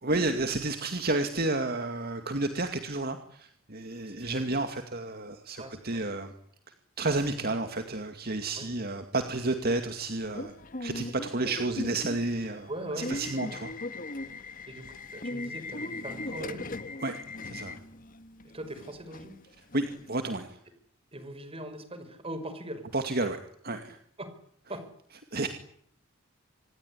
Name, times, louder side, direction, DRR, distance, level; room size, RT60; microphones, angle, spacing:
voice 1, 0.0-6.3 7.0-10.5 10.8-12.7 13.0-13.7 17.0-17.2 17.4-17.8 19.7-20.6 22.9-23.4 23.6-24.0 25.3-25.5, right 2 dB, 50° right, 7 dB, 2.3 m, -31 dB
voice 2, 5.6-6.0 8.6-8.7 12.7-13.6 14.7-14.9 15.1-16.7 18.5-19.4 21.1-22.8 24.2-24.3 24.7-24.8, right 1 dB, 30° right, 11 dB, 5.2 m, -40 dB
Subway metro underground / Alarm, 10.3-20.1, left 2 dB, 40° left, 1.7 m, -39 dB
26.5 x 21.0 x 10.0 m, 0.66 s
head